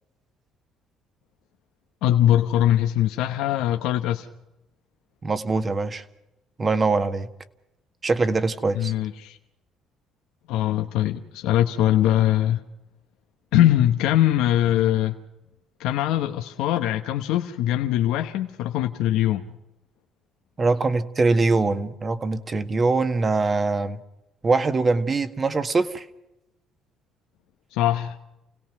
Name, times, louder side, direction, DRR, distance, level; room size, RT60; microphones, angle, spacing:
voice 1, 2.0-4.3 8.7-9.4 10.5-12.6 13.5-15.1 15.8-19.4 27.7-28.2, left 12 dB, 80° left, 5 dB, 1.0 m, -22 dB
voice 2, 5.2-6.0 6.6-7.3 8.0-8.9 20.6-24.0 24.4-26.0, right 3 dB, 35° right, 9 dB, 1.7 m, -23 dB
29.0 x 17.5 x 6.1 m, 0.90 s
supercardioid pair, 75°, 0 cm